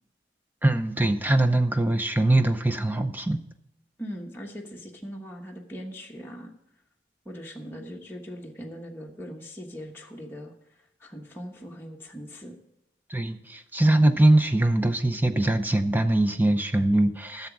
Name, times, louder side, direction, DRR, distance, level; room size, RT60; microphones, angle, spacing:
voice 1, 0.6-3.4 13.1-17.5, right 1 dB, 10° right, 8 dB, 0.6 m, -22 dB
voice 2, 4.0-6.5 7.2-10.5 11.0-12.5, equal, 10° left, -1 dB, 1.1 m, -40 dB
11.5 x 7.1 x 6.0 m, 0.85 s
head